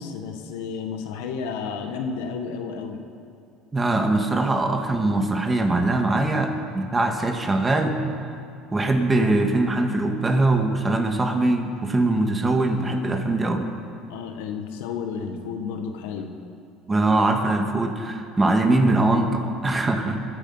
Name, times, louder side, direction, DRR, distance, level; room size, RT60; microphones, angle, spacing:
voice 1, 0.0-3.0 14.1-16.3, left 5 dB, 85° left, 4 dB, 1.5 m, -32 dB
voice 2, 3.7-8.0 8.7-13.7 16.9-20.2, right 2 dB, 20° right, 4 dB, 1.8 m, -22 dB
22.5 x 8.6 x 5.7 m, 2.5 s
supercardioid pair, 100°, 0 cm